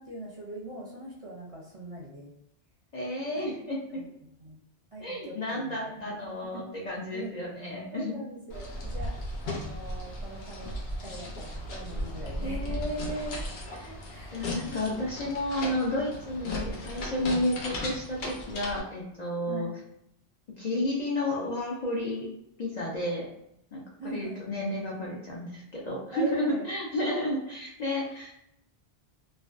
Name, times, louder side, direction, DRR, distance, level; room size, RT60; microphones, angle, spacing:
voice 1, 0.0-2.3 3.4-3.5 3.9-4.1 4.4-4.6 4.9-6.3 7.1-7.3 7.6-9.2 9.4-10.7 11.0-12.8 14.1-14.4 14.6-14.9 19.5-19.7 24.0-24.5 26.1-26.7, right 1 dB, 45° right, -4 dB, 0.5 m, -41 dB
voice 2, 2.9-4.0 5.0-8.1 12.4-13.5 13.7-14.0 14.3-19.7 20.6-22.3 22.6-23.3 23.7-28.5, left 1 dB, 55° left, -4 dB, 0.5 m, -32 dB
sound 1, 8.5-18.8, left 1 dB, 85° left, 0.9 m, -36 dB
2.5 x 2.1 x 2.4 m, 0.77 s
omnidirectional pair, 1.0 m